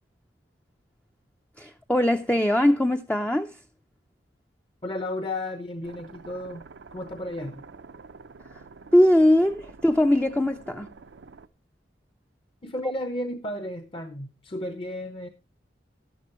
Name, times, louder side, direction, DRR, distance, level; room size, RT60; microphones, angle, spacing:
voice 1, 1.6-3.6 8.5-8.6 8.9-10.9 12.8-12.9, left 1 dB, 5° left, 0.5 m, -21 dB
voice 2, 4.8-6.7 6.9-7.6 12.6-15.3, left 1 dB, 30° left, 0.8 m, -33 dB
sound 1, 5.8-11.5, right 4 dB, 80° right, 0.6 m, -47 dB
12.0 x 11.0 x 3.0 m
head